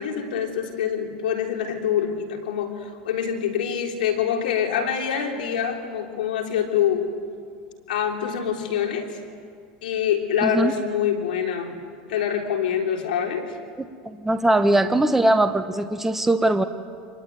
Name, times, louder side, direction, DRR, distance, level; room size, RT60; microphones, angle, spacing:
voice 1, 0.0-7.1 7.9-9.1 9.8-11.8 12.1-13.6, left 8 dB, 85° left, 3 dB, 3.7 m, -25 dB
voice 2, 10.4-10.7 14.0-16.6, right 1 dB, 5° right, 8 dB, 1.2 m, -20 dB
27.0 x 21.0 x 9.5 m, 2.1 s
supercardioid pair, 120°, 5 cm